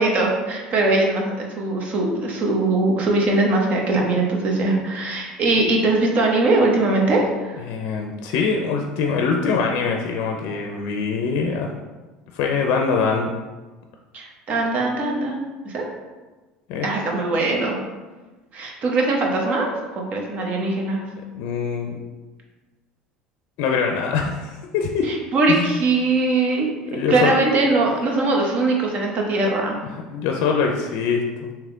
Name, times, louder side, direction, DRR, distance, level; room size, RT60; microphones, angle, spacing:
voice 1, 0.0-7.6 14.1-15.8 16.8-17.7 18.5-19.7 20.0-21.0 25.1-26.7 27.1-29.8, right 2 dB, 50° right, 0 dB, 0.9 m, -21 dB
voice 2, 7.6-11.7 12.3-13.3 16.7-16.9 21.3-22.0 23.6-25.1 25.5-25.8 26.9-27.4 29.9-31.5, left 5 dB, 70° left, 2 dB, 0.4 m, -23 dB
3.4 x 2.9 x 3.7 m, 1.2 s
supercardioid pair, 90°, 3 cm